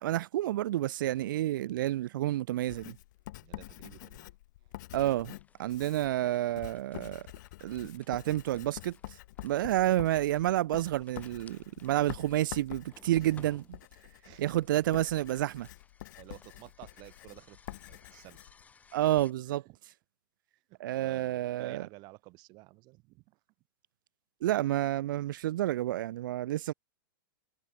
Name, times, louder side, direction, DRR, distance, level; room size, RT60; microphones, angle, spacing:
voice 1, 0.0-3.0 4.9-5.3 5.6-7.3 7.6-9.0 9.4-13.6 14.4-15.7 18.9-19.6 20.8-21.8 24.4-26.7, right 14 dB, 65° right, 0.5 m, -29 dB
Writing, 2.7-19.3, left 17 dB, 55° left, 2.8 m, -47 dB
voice 2, 3.3-4.3 4.6-4.8 13.2-13.6 14.0-14.5 16.1-18.4 19.6-19.8 20.7-23.4, right 24 dB, 35° right, 4.3 m, -53 dB
sound 1, 5.3-19.3, left 5 dB, 15° left, 7.9 m, -61 dB
hypercardioid pair, 145°, 12 cm